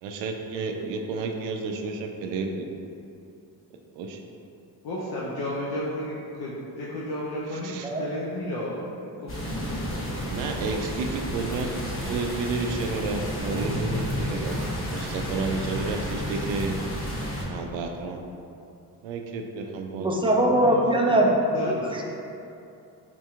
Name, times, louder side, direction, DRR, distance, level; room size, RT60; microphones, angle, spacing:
voice 1, 0.0-2.7 3.9-4.2 7.5-7.9 10.3-11.7 12.1-14.6 14.9-16.8 17.5-18.2 19.0-20.1, right 4 dB, 70° right, 3 dB, 0.5 m, -31 dB
voice 2, 4.8-10.3 20.5-20.8 21.5-22.0, left 1 dB, 55° left, -6 dB, 0.7 m, -33 dB
sound 1, 9.3-17.4, equal, 25° left, 1.0 m, -31 dB
voice 3, 20.0-22.0, right 1 dB, 10° right, -1 dB, 0.4 m, -22 dB
4.4 x 2.8 x 2.3 m, 2.7 s
hypercardioid pair, 45°, 47 cm